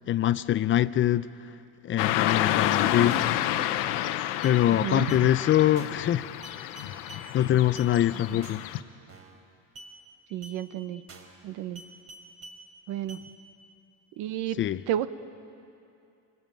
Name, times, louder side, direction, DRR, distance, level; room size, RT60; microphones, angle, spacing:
voice 1, 0.1-1.3 1.8-3.2 4.4-6.2 6.6-6.7 7.3-8.7 14.6-14.8, left 12 dB, 35° left, 0.6 m, -23 dB
Car passing by / Traffic noise roadway noise, 2.0-8.8, left 13 dB, 75° left, 1.0 m, -29 dB
sound 1, 3.1-3.4 3.8-4.1 4.4-4.6 5.1-5.3 5.8-6.1 6.4-7.3 7.8-7.9 8.4-8.7 9.1-9.4 9.7-9.9 10.4-10.6 11.1-11.4 11.7-12.6 13.1-13.2, right 2 dB, 45° right, 4.3 m, -47 dB
voice 2, 4.7-5.1 8.3-8.4 10.3-11.0 11.4-11.8 12.9-13.2 14.2-14.6 14.9-15.1, right 11 dB, 70° right, 1.1 m, -31 dB
25.0 x 19.5 x 9.1 m
cardioid pair, 120°, 33 cm